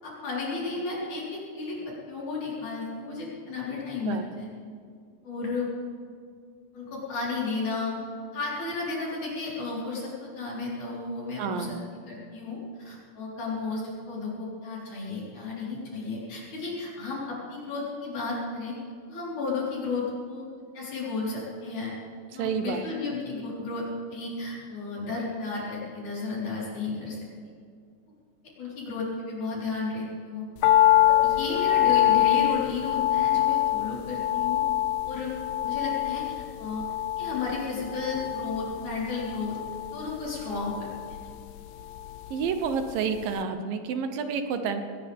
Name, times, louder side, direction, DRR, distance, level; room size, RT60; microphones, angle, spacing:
voice 1, 0.0-4.5 5.2-5.7 6.7-8.0 8.3-11.8 12.1-18.7 19.1-20.5 20.7-21.9 22.3-27.2 28.6-30.5 31.0-34.6 35.0-35.3 35.6-36.9 37.2-39.6 39.9-41.2, left 3 dB, 55° left, -6 dB, 5.8 m, -33 dB
voice 2, 11.4-11.7 22.4-22.8 42.3-44.8, right 6 dB, 75° right, 7 dB, 2.6 m, -29 dB
sound 1, 30.6-42.9 43.2-43.3, left 13 dB, 90° left, 2.4 m, -25 dB
20.5 x 18.5 x 3.6 m, 2.2 s
omnidirectional pair, 4.1 m